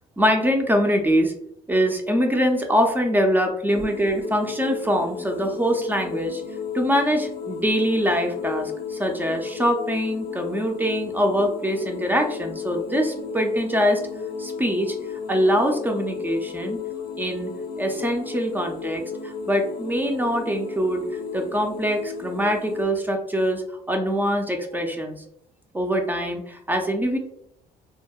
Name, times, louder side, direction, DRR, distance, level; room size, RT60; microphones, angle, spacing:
voice 1, 0.2-1.3 1.7-6.4 6.7-14.0 14.4-15.0 15.3-16.8 17.2-17.5 17.8-21.0 21.3-25.2 25.7-27.2, equal, 10° right, 3 dB, 0.3 m, -23 dB
sound 1, 3.7-22.8, left 6 dB, 55° left, 0.5 m, -34 dB
2.6 x 2.1 x 2.2 m, 0.73 s
cardioid pair, 110°, 17 cm